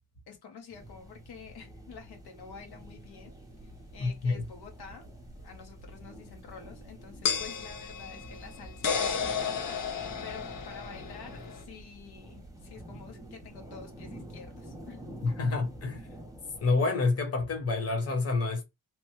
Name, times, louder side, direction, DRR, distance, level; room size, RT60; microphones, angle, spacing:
voice 1, 0.3-3.3 3.9-5.1 5.4-15.0, left 6 dB, 85° left, 1.0 m, -49 dB
sound 1, 0.7-16.7, right 1 dB, 10° right, 0.6 m, -48 dB
sound 2, 2.8-2.9 5.3-5.4 7.2-11.6, left 6 dB, 60° left, 0.7 m, -33 dB
voice 2, 4.0-4.4 15.2-16.1 16.6-18.6, left 3 dB, 40° left, 1.0 m, -28 dB
3.1 x 2.1 x 3.0 m
wide cardioid pair, 175°, 37 cm